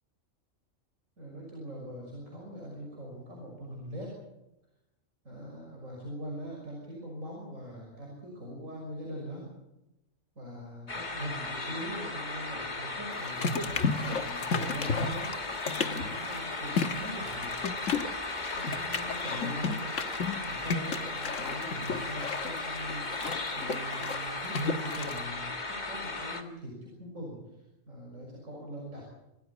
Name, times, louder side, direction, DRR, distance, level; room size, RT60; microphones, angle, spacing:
voice 1, 1.2-4.1 5.2-9.5 10.4-17.5 18.5-19.8 20.4-29.0, equal, 80° right, -2 dB, 6.5 m, -42 dB
sound 1, 10.9-26.4, left 2 dB, 35° left, 1.9 m, -36 dB
sound 2, 13.1-25.3, left 4 dB, 75° left, 1.6 m, -34 dB
27.0 x 14.5 x 8.4 m, 0.93 s
omnidirectional pair, 1.3 m